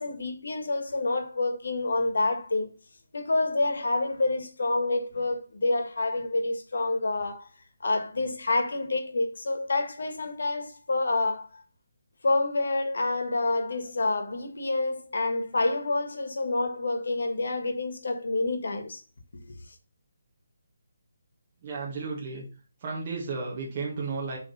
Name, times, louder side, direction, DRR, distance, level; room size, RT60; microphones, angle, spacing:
voice 1, 0.0-2.7 3.1-7.5 7.8-11.6 12.2-19.0 19.3-19.6, left 2 dB, 70° left, 1.6 m, -28 dB
voice 2, 21.6-22.4 22.8-24.4, right 4 dB, 25° right, 1.4 m, -33 dB
6.8 x 3.6 x 5.4 m
hypercardioid pair, 175°, 0 cm